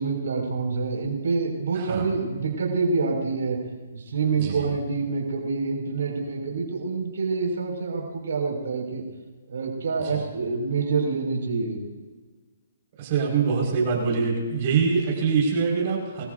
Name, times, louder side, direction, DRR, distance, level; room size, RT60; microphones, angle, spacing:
voice 1, 0.0-3.6 3.9-9.0 9.5-11.8, right 4 dB, 70° right, 1 dB, 5.7 m, -27 dB
voice 2, 1.7-2.1 4.3-4.7 10.0-10.2 13.0-16.2, right 5 dB, 40° right, -2 dB, 5.2 m, -24 dB
26.0 x 14.5 x 2.7 m, 1.4 s
hypercardioid pair, 150°, 0 cm